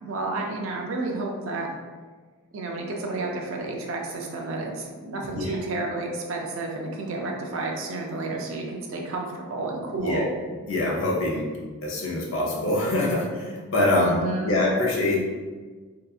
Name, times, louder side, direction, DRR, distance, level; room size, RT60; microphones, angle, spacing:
voice 1, 0.0-1.7 2.5-10.3 13.9-14.6, right 2 dB, 60° right, 0 dB, 0.4 m, -31 dB
voice 2, 10.7-11.5 11.8-15.4, left 1 dB, 60° left, -4 dB, 0.6 m, -24 dB
2.7 x 2.4 x 2.3 m, 1.4 s
head